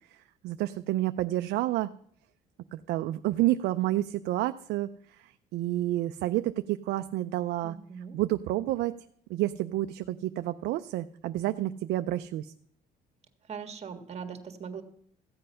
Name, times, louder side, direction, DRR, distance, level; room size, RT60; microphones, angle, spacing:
voice 1, 0.4-1.9 2.7-7.8 8.1-9.0 9.3-12.5, right 15 dB, 80° right, 10 dB, 0.5 m, -29 dB
voice 2, 7.6-8.2 13.4-14.8, right 6 dB, 40° right, 7 dB, 1.6 m, -40 dB
15.0 x 7.7 x 5.6 m, 0.65 s
cardioid pair, 110°, 17 cm